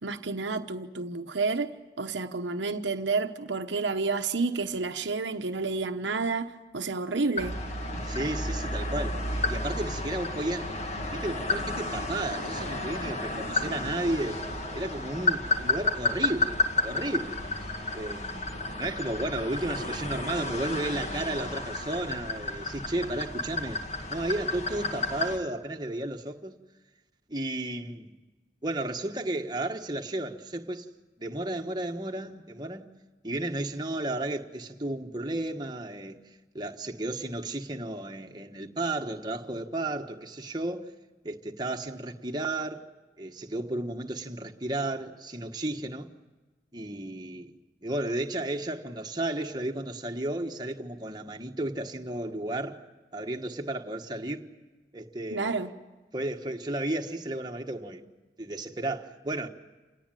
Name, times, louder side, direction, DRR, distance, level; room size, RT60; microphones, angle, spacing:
voice 1, 0.0-7.6 55.3-55.7, right 4 dB, 90° right, 1.1 m, -30 dB
sound 1, 7.4-25.4, left 2 dB, 35° left, 2.0 m, -32 dB
voice 2, 8.0-10.7 11.1-17.4 17.9-23.8 24.1-26.5 27.3-28.1 28.6-30.9 31.2-32.9 33.2-36.2 36.5-40.9 41.2-42.9 43.2-46.1 46.7-47.5 47.8-52.8 53.1-54.5 54.9-55.7 56.1-58.0 58.4-59.5, right 1 dB, 25° right, 1.4 m, -33 dB
28.0 x 18.5 x 9.1 m
head